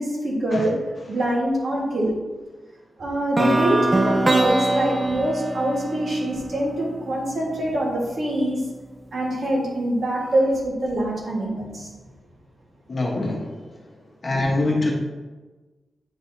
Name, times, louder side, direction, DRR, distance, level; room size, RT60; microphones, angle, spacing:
voice 1, 0.0-2.1 3.0-8.6 9.1-11.9, right 1 dB, 60° right, -3 dB, 1.7 m, -24 dB
sound 1, 3.4-7.3, right 2 dB, 25° right, 0.4 m, -23 dB
voice 2, 12.9-13.6 14.2-14.9, left 2 dB, 40° left, -1 dB, 1.2 m, -24 dB
8.7 x 4.0 x 2.8 m, 1.2 s
wide cardioid pair, 105°, 0 cm